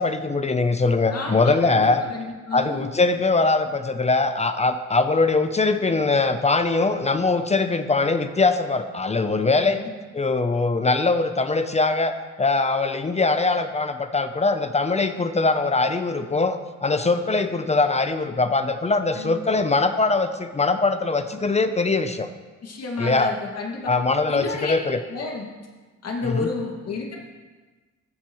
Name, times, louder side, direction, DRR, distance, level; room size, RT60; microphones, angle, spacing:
voice 1, 0.0-2.1 2.5-9.8 10.1-22.3 23.0-23.3 23.9-25.0 26.2-26.4, left 3 dB, 20° left, 9 dB, 0.6 m, -22 dB
voice 2, 1.1-2.9 9.5-9.9 19.2-19.4 22.6-23.9 24.3-24.8 25.1-25.5 26.0-27.2, left 3 dB, 55° left, 0 dB, 2.2 m, -31 dB
15.5 x 7.5 x 3.1 m, 1.3 s
cardioid pair, 90°, 30 cm